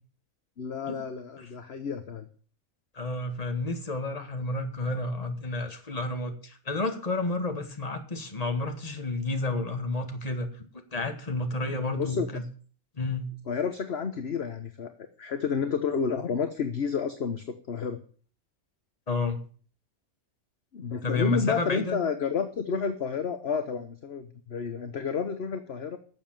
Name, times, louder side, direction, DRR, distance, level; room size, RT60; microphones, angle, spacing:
voice 1, 0.6-2.3 11.9-12.3 13.5-14.9 15.2-18.0 20.7-26.0, left 6 dB, 50° left, 8 dB, 1.2 m, -30 dB
voice 2, 2.9-10.5 10.9-12.4 13.0-13.3 19.1-19.4 21.0-22.0, left 2 dB, 25° left, 6 dB, 1.8 m, -30 dB
12.0 x 7.3 x 8.9 m, 0.43 s
omnidirectional pair, 1.5 m